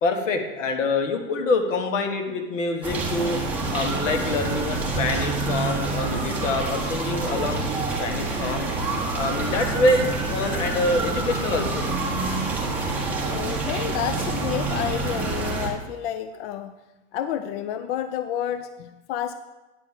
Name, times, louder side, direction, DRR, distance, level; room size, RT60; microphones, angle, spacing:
voice 1, 0.0-3.4 3.7-8.7 9.1-11.8, left 2 dB, 85° left, 5 dB, 1.5 m, -26 dB
sound 1, 2.8-15.7, right 3 dB, 5° right, 1.4 m, -27 dB
voice 2, 13.3-16.8 17.1-19.3, left 10 dB, 50° left, 10 dB, 0.5 m, -30 dB
9.4 x 4.6 x 7.4 m, 1.1 s
supercardioid pair, 140°, 37 cm